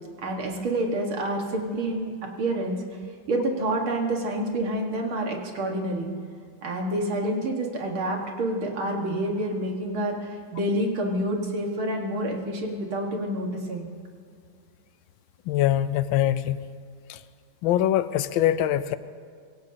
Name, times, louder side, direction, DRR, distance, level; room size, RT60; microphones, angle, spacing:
voice 1, 0.2-2.8 3.3-6.1 6.6-13.9, right 1 dB, 90° right, 1 dB, 2.6 m, -28 dB
voice 2, 15.5-16.6 17.1-17.2 17.6-19.0, left 12 dB, 80° left, 13 dB, 1.4 m, -23 dB
25.0 x 17.0 x 2.9 m, 2.2 s
omnidirectional pair, 2.2 m